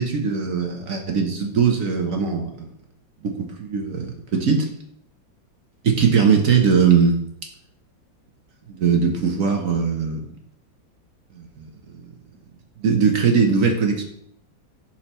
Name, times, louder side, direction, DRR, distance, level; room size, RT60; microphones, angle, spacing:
voice 1, 0.0-2.7 3.2-4.7 5.8-7.2 8.7-10.2 11.3-12.0 12.8-14.0, right 6 dB, 55° right, 3 dB, 1.0 m, -20 dB
11.0 x 4.5 x 3.0 m, 0.68 s
omnidirectional pair, 2.1 m